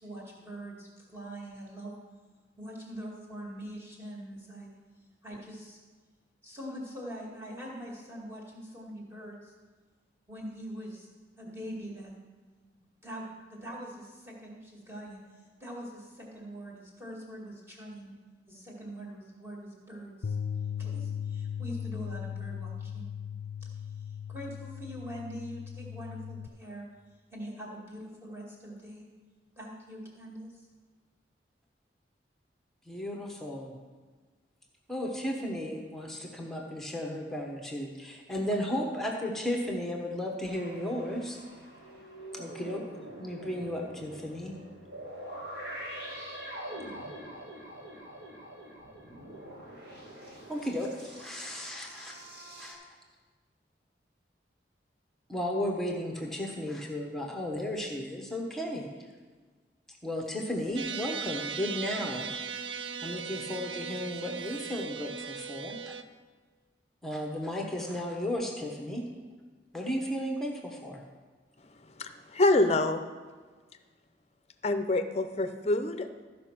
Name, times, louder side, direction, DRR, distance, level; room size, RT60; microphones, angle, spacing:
voice 1, 0.0-1.9 2.6-4.7 5.2-5.8 6.4-9.5 10.3-11.1 11.4-12.1 13.0-13.2 13.5-18.1 18.5-20.4 20.8-23.1 24.3-26.8 27.3-29.1 29.6-30.5, equal, 15° right, -4 dB, 2.2 m, -43 dB
Bass guitar, 20.2-26.5, left 8 dB, 90° left, 0.4 m, -37 dB
voice 2, 32.9-33.7 34.9-41.4 42.3-42.8 43.2-44.5 50.5-52.1 52.6-52.8 55.3-58.9 60.0-62.3 63.0-65.9 67.0-69.0 69.7-71.0, left 1 dB, ahead, 0 dB, 1.1 m, -34 dB
sound 1, 40.4-52.7, right 1 dB, 65° right, 2.2 m, -44 dB
sound 2, 60.8-66.0, right 6 dB, 85° right, 0.5 m, -38 dB
voice 3, 72.0-73.0 74.6-76.3, left 2 dB, 35° left, 9 dB, 0.6 m, -26 dB
14.0 x 5.3 x 5.9 m, 1.4 s
head